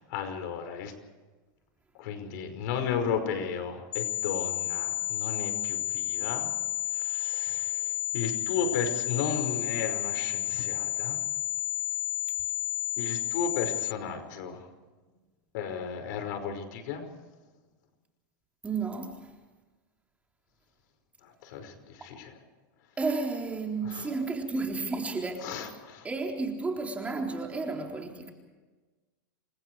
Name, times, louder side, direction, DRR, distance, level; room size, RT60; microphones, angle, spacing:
voice 1, 0.1-0.9 2.0-6.5 7.0-7.7 8.1-11.2 13.0-14.6 15.5-17.1 21.5-21.7 22.0-22.3 23.8-24.1 25.4-26.0, left 6 dB, 65° left, 7 dB, 5.4 m, -34 dB
sound 1, 3.9-13.9, left 14 dB, 80° left, 0.8 m, -31 dB
voice 2, 18.6-19.2 23.0-25.7 26.0-28.3, right 3 dB, 10° right, 2 dB, 3.8 m, -32 dB
28.5 x 25.0 x 4.8 m, 1.3 s
supercardioid pair, 140°, 11 cm